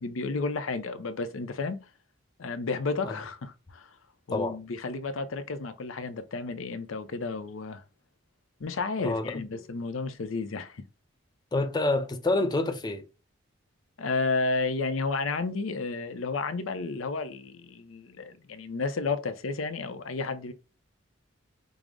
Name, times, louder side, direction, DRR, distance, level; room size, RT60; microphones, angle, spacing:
voice 1, 0.0-1.8 2.4-3.9 4.3-7.8 8.6-10.8 14.0-20.5, left 3 dB, 80° left, 0.6 m, -32 dB
voice 2, 9.0-9.6 11.5-13.0, left 2 dB, 20° left, 0.5 m, -28 dB
4.8 x 2.0 x 3.7 m
head